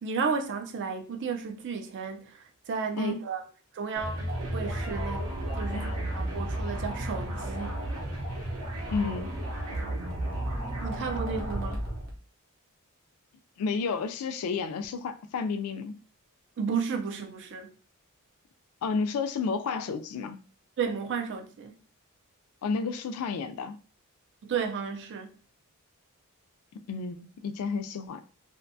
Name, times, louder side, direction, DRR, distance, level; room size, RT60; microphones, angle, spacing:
voice 1, 0.0-3.4 3.7-5.9 6.1-7.8 10.8-11.8 16.6-17.7 20.8-21.8 24.4-25.3, right 5 dB, 55° right, 0.4 m, -33 dB
sound 1, 3.9-12.2, right 1 dB, 80° right, 0.8 m, -33 dB
voice 2, 8.9-9.3 13.6-16.0 18.8-20.4 22.6-23.8 26.9-28.2, left 5 dB, 70° left, 0.3 m, -31 dB
2.6 x 2.1 x 2.6 m
head